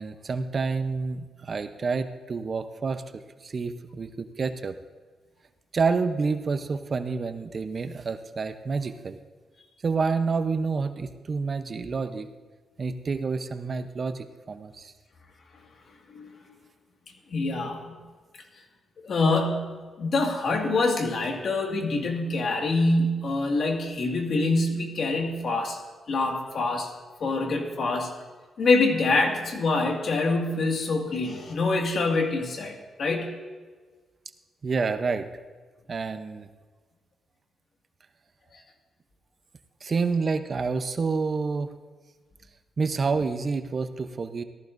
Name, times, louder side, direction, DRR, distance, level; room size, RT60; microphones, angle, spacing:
voice 1, 0.0-4.7 5.7-9.2 9.8-12.3 12.8-14.9 34.6-35.3 35.9-36.5 39.8-41.7 42.8-44.4, right 4 dB, 45° right, 9 dB, 0.7 m, -28 dB
voice 2, 17.3-18.0 19.0-25.8 26.1-26.9 27.2-28.1 28.6-33.3 38.5-38.6, left 3 dB, 60° left, 2 dB, 2.0 m, -25 dB
18.0 x 14.0 x 2.6 m, 1.4 s
cardioid pair, 75°, 0 cm